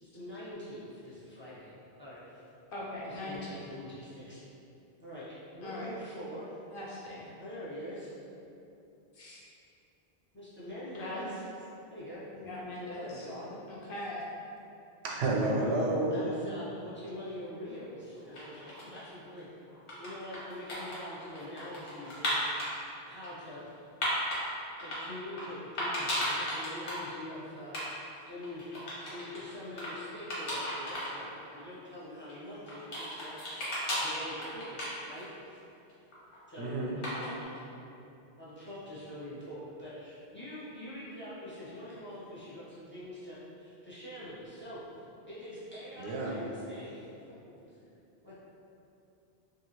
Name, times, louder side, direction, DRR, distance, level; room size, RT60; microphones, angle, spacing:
voice 1, 0.0-1.7 2.0-2.4 3.0-4.4 5.0-6.6 7.4-8.1 10.3-11.4 11.9-12.2 12.9-13.6 16.1-19.5 20.0-23.7 24.0-24.2 24.8-27.9 28.3-28.7 29.0-33.7 34.0-35.6 36.5-36.7 37.1-37.6 38.4-44.8 45.2-47.1 48.2-48.4, left 1 dB, 15° left, -11 dB, 0.5 m, -44 dB
voice 2, 2.7-3.7 5.6-5.9 6.7-7.3 9.1-9.4 11.0-11.2 12.3-13.3 13.7-14.2, left 1 dB, 60° left, -4 dB, 0.7 m, -40 dB
voice 3, 15.0-16.3 36.6-36.9 46.0-46.3, right 2 dB, 80° right, -3 dB, 0.8 m, -30 dB
sound 1, 18.1-19.1 19.7-22.7 23.2-24.4 24.8-25.5 25.8-27.1 27.3-27.4 27.6-27.9 28.1-29.4 29.8-29.9 30.3-31.1 31.5-31.6 32.2-35.4 35.7-36.4 37.0-37.4, equal, 90° left, 1.2 m, -35 dB
2.8 x 2.6 x 2.8 m, 2.8 s
omnidirectional pair, 1.1 m